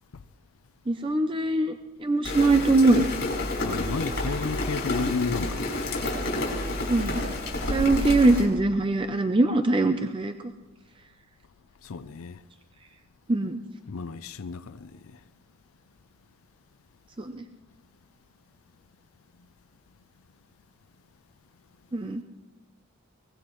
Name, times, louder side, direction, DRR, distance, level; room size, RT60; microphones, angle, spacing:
voice 1, 0.9-3.1 6.9-7.2 7.7-10.3 13.3-13.6 17.2-17.4 21.9-22.2, right 2 dB, 25° right, 0.5 m, -22 dB
Rain, 2.2-8.5, left 2 dB, 50° left, 5.0 m, -29 dB
voice 2, 3.6-5.8 11.8-12.4 13.9-15.2, left 4 dB, 75° left, 0.5 m, -32 dB
23.5 x 20.0 x 3.1 m
head